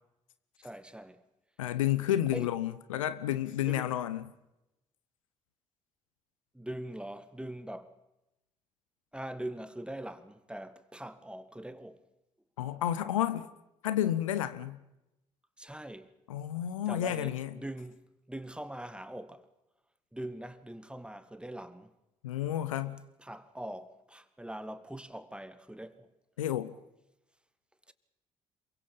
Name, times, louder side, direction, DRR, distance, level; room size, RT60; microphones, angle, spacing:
voice 1, 0.6-1.2 2.3-2.5 3.6-4.0 6.5-7.9 9.1-12.0 15.6-16.1 16.9-19.5 20.1-22.0 23.2-26.1 27.9-28.0, right 1 dB, 5° right, 1.8 m, -42 dB
voice 2, 1.6-4.2 12.6-13.5 13.8-14.8 16.3-17.5 22.2-23.0 26.4-26.7, left 12 dB, 80° left, 0.8 m, -31 dB
27.5 x 23.5 x 5.4 m
figure-of-eight pair, 45°, 17 cm